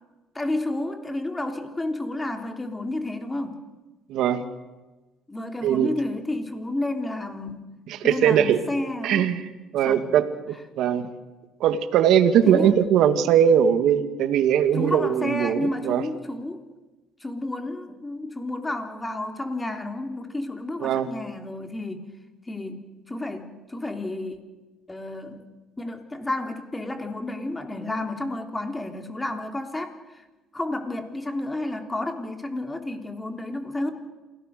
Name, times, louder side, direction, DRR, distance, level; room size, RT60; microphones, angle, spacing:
voice 1, 0.3-3.6 5.3-7.7 8.0-9.3 9.8-10.1 12.4-12.7 14.7-16.6 17.2-22.0 22.5-22.8 23.1-24.4 24.9-25.4 25.8-30.2 30.5-33.9, left 2 dB, 15° left, 5 dB, 3.4 m, -31 dB
voice 2, 4.1-4.4 5.6-5.9 7.9-8.6 9.0-11.1 11.6-16.0 20.8-21.1, right 9 dB, 70° right, 9 dB, 2.0 m, -21 dB
28.0 x 18.0 x 6.8 m, 1.2 s
cardioid pair, 100°, 0 cm